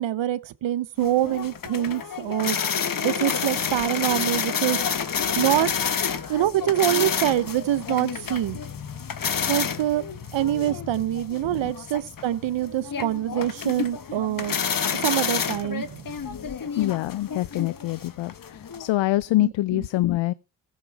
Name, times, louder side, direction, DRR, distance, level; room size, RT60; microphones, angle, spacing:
voice 1, 0.0-2.6 3.0-4.8 5.4-5.7 6.3-8.6 9.5-10.1 10.3-14.6 15.0-16.3 19.4-19.8, right 13 dB, 80° right, 0.9 m, -25 dB
sound 1, 1.0-18.9, left 7 dB, 45° left, 1.2 m, -29 dB
voice 2, 16.8-20.3, left 16 dB, 80° left, 0.5 m, -25 dB
15.0 x 6.5 x 4.7 m
supercardioid pair, 45°, 45 cm